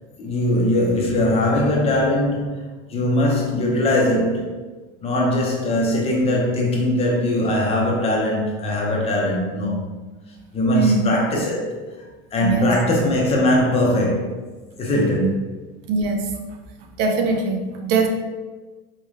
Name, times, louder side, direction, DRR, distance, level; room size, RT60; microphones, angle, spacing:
voice 1, 0.2-4.6 5.0-9.8 10.5-11.8 12.3-14.3 14.8-15.4, left 1 dB, 20° left, 0.5 m, -20 dB
voice 2, 15.0-15.3 15.9-16.3 17.0-18.1, right 4 dB, 80° right, 0.6 m, -21 dB
4.2 x 3.2 x 2.4 m
cardioid pair, 170°, 29 cm